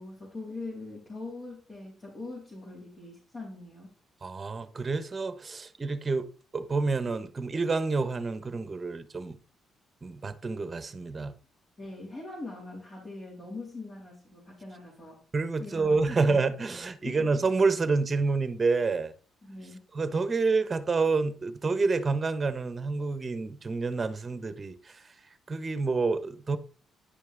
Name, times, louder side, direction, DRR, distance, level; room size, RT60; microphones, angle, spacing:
voice 1, 0.0-3.9 11.8-15.2 15.6-16.2 17.0-17.3 19.4-19.8, left 2 dB, 40° left, 3.0 m, -42 dB
voice 2, 4.2-6.3 6.5-9.4 10.0-11.3 15.3-19.1 19.9-25.0 25.5-26.6, right 4 dB, 30° right, 1.0 m, -28 dB
10.0 x 5.4 x 3.9 m
cardioid pair, 90°, 0 cm